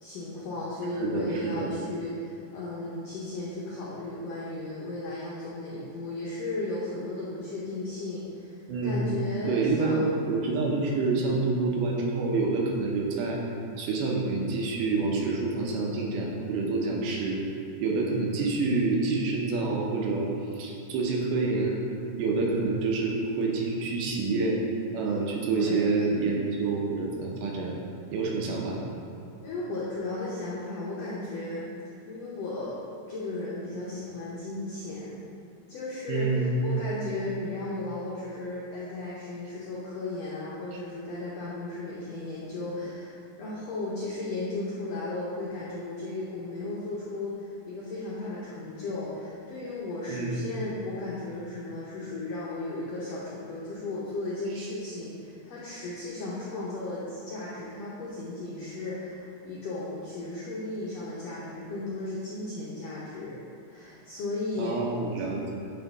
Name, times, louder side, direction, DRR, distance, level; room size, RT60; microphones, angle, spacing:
voice 1, 0.0-10.1 11.2-11.4 25.4-26.0 29.4-31.7 32.1-32.8 33.1-35.2 35.7-63.4 63.7-64.8, left 2 dB, 85° left, -7 dB, 1.4 m, -35 dB
voice 2, 1.0-1.7 8.7-9.2 9.5-13.4 13.8-17.5 17.8-21.9 22.2-24.6 24.9-27.7 28.1-28.8 36.1-36.5 50.1-50.4 54.6-54.7 64.6-65.6, right 3 dB, 75° right, -1 dB, 2.2 m, -27 dB
9.1 x 3.6 x 3.5 m, 2.7 s
omnidirectional pair, 4.0 m